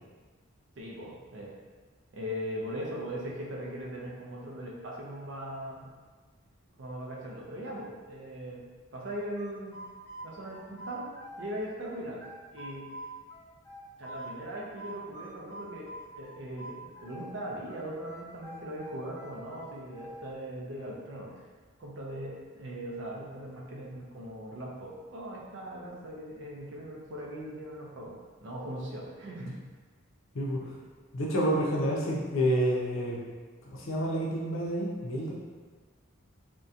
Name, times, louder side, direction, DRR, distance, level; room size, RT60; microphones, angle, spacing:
voice 1, 0.8-1.5 2.1-5.9 6.8-8.6 8.9-9.8 10.2-11.1 11.4-12.2 12.5-12.9 14.0-15.9 16.2-21.5 21.8-29.6 30.6-30.7, equal, 60° right, -3 dB, 0.5 m, -39 dB
sound 1, 9.0-11.5 11.8-14.4 14.8-17.4 17.7-20.3, right 1 dB, 10° left, 0.4 m, -45 dB
voice 2, 31.1-33.2 33.7-35.3, equal, 70° left, -4 dB, 0.5 m, -29 dB
2.7 x 2.2 x 2.4 m, 1.4 s
head